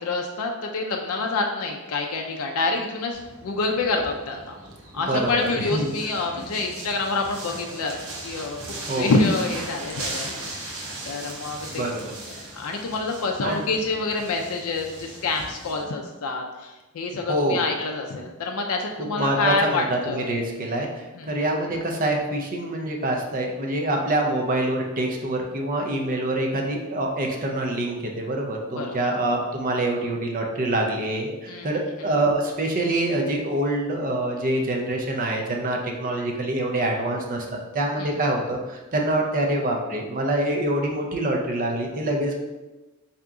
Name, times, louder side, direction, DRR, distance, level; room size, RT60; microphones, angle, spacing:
voice 1, 0.0-4.6 4.9-7.9 8.2-10.8 11.0-11.9 12.5-20.4 21.1-21.3 28.8-29.1 31.5-31.7 38.0-38.1, left 3 dB, 70° left, 2 dB, 0.4 m, -27 dB
sound 1, 3.1-15.8, right 2 dB, 65° right, 0.9 m, -38 dB
voice 2, 5.1-5.9 8.9-9.1 11.7-12.1 13.4-13.7 17.3-17.7 19.2-42.4, right 1 dB, 40° right, 1 dB, 0.5 m, -25 dB
3.5 x 2.8 x 3.6 m, 1.1 s
head